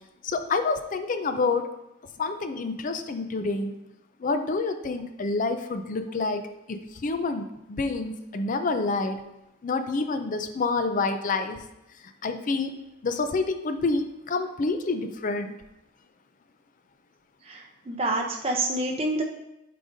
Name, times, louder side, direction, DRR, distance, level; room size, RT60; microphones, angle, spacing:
voice 1, 0.2-1.7 2.2-3.7 4.2-6.4 6.7-9.2 9.6-11.6 12.2-15.6, left 3 dB, 40° left, 8 dB, 0.4 m, -28 dB
voice 2, 17.4-19.2, right 2 dB, 30° right, 1 dB, 0.6 m, -28 dB
8.3 x 5.0 x 2.6 m, 0.90 s
head